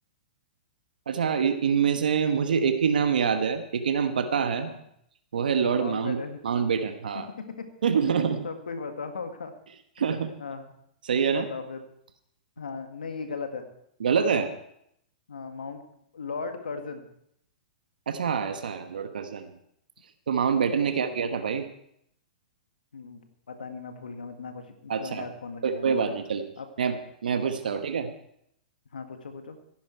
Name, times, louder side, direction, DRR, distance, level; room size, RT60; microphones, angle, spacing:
voice 1, 1.1-4.7 5.3-6.2 6.4-7.3 7.8-8.4 10.0-10.3 11.0-11.5 14.0-14.5 18.1-19.5 20.3-21.7 24.9-25.3 25.6-26.4 26.8-27.0 27.2-28.1, right 6 dB, 75° right, 8 dB, 1.3 m, -25 dB
voice 2, 5.6-6.4 7.1-7.7 8.1-9.5 10.0-10.1 10.4-10.7 11.3-11.8 12.6-13.6 15.3-15.8 16.1-17.0 20.7-21.2 22.9-26.2 26.6-26.9 27.6-27.8 28.9-29.6, left 4 dB, 85° left, 7 dB, 1.9 m, -38 dB
16.0 x 10.5 x 4.6 m, 0.74 s
hypercardioid pair, 120°, 5 cm